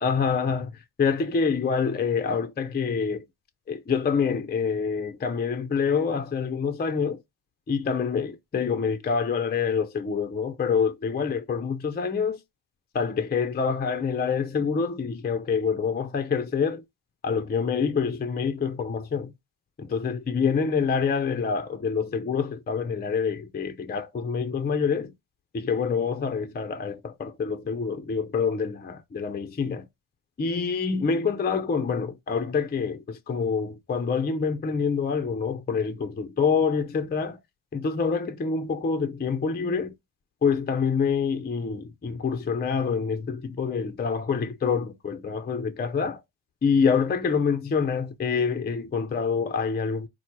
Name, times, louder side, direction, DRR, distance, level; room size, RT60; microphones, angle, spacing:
voice 1, 0.0-0.7 1.0-3.2 3.7-7.2 7.7-12.4 12.9-16.8 17.2-19.3 19.8-25.1 25.5-29.9 30.4-37.4 37.7-39.9 40.4-46.2 46.6-50.1, left 5 dB, 20° left, 0.4 m, -26 dB
4.5 x 2.1 x 4.4 m
supercardioid pair, 50°, 48 cm